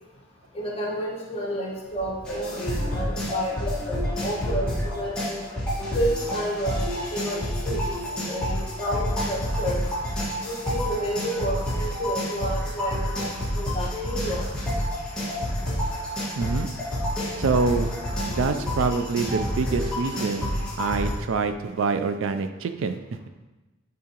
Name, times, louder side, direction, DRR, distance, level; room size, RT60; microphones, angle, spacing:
voice 1, 0.5-5.4 5.9-6.8 7.1-9.8 10.4-13.3 13.5-14.6 19.2-19.3, equal, 30° left, -3 dB, 1.3 m, -30 dB
sound 1, 2.2-21.1, equal, 5° left, 1.6 m, -29 dB
voice 2, 16.4-16.7 17.4-17.9 18.3-23.0, right 4 dB, 65° right, 8 dB, 0.4 m, -26 dB
10.0 x 3.6 x 2.9 m, 1.1 s
head